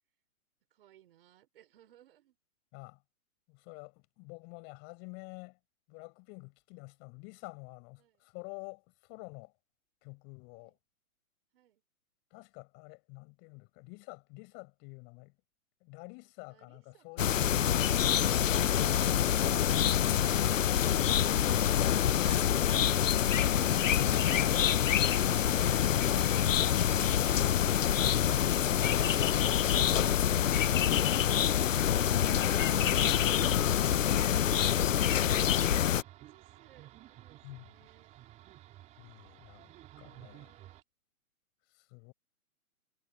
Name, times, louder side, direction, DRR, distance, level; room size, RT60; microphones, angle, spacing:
voice 1, 0.7-2.4 8.0-8.3 10.5-10.8 11.5-11.8 16.5-17.4 36.1-38.2 39.9-40.8, right 12 dB, 40° right, 5.4 m, -64 dB
voice 2, 3.5-5.6 5.9-9.5 10.0-10.8 12.3-15.3 15.8-17.6 24.0-24.8 37.4-37.6 39.0-39.7 40.0-40.5 41.7-42.1, left 33 dB, 25° left, 5.9 m, -49 dB
sound 1, 17.2-36.0, left 10 dB, 60° left, 0.7 m, -26 dB
sound 2, 22.1-22.5 23.9-24.2 25.4-25.7 27.2-27.5 29.0-29.2 30.5-30.7, left 5 dB, 80° left, 5.7 m, -45 dB
sound 3, 35.2-40.8, right 14 dB, 15° right, 3.8 m, -54 dB
hypercardioid pair, 150°, 43 cm